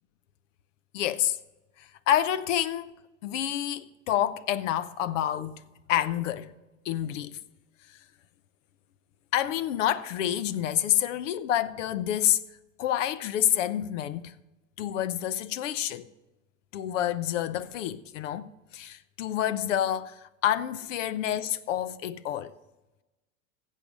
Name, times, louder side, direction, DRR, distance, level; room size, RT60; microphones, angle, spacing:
voice 1, 0.9-1.4 1.8-5.6 5.9-6.5 6.8-7.4 7.9-8.0 9.3-12.4 12.8-14.3 14.8-16.1 16.7-22.5, left 11 dB, 65° left, 0.8 m, -28 dB
15.5 x 7.4 x 5.2 m
hypercardioid pair, 90°, 40 cm